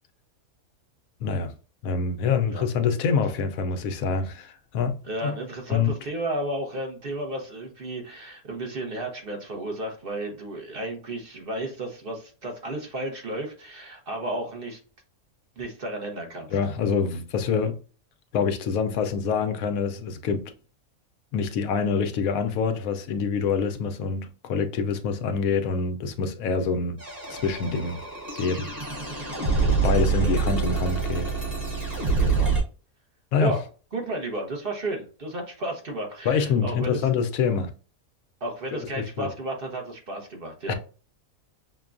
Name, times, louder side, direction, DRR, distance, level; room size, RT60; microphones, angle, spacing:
voice 1, 1.2-1.5 1.8-5.3 5.7-5.9 16.5-17.8 18.3-20.4 21.3-27.0 27.3-28.0 28.4-28.7 29.8-31.3 33.3-33.5 36.2-37.7 39.0-39.3 40.7-40.8, left 5 dB, 80° left, 1.0 m, -26 dB
voice 2, 5.0-14.8 15.6-16.5 29.6-30.3 32.2-32.5 33.4-33.6 33.9-37.1 38.4-40.7, right 1 dB, 45° right, 1.0 m, -33 dB
sound 1, 27.0-32.6, right 4 dB, 30° right, 1.3 m, -26 dB
5.8 x 2.2 x 2.4 m
omnidirectional pair, 1.5 m